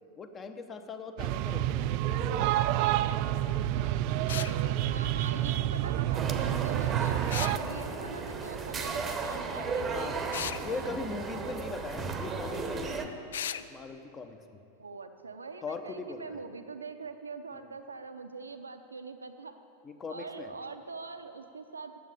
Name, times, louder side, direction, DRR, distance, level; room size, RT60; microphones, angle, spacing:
voice 1, 0.2-2.5 5.4-5.7 9.8-10.2 10.5-13.1 13.7-14.6 15.6-16.4 19.8-20.5, left 4 dB, 20° left, 8 dB, 0.8 m, -40 dB
sound 1, 1.2-7.6, right 13 dB, 45° right, 0.3 m, -29 dB
sound 2, 4.3-4.6 7.3-7.6 10.3-10.6 13.3-13.6, left 9 dB, 60° left, 0.3 m, -35 dB
voice 2, 4.4-7.2 7.6-10.9 14.8-19.5 20.1-22.0, right 4 dB, 75° right, 8 dB, 0.6 m, -43 dB
sound 3, 6.1-13.1, right 4 dB, 20° right, 0.9 m, -35 dB
9.1 x 8.1 x 8.8 m, 2.7 s
figure-of-eight pair, 90°, 0 cm